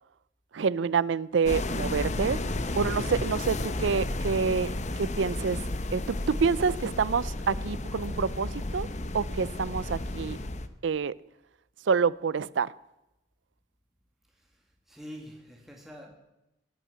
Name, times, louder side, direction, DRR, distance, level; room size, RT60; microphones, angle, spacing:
voice 1, 0.5-2.4 2.8-5.6 5.9-8.9 9.1-10.4 10.8-11.1 11.9-12.7, right 5 dB, 80° right, 0.5 m, -27 dB
sound 1, 1.5-10.7, left 2 dB, 40° left, 0.9 m, -32 dB
voice 2, 14.3-16.1, equal, ahead, 2.1 m, -47 dB
17.5 x 9.1 x 8.0 m
head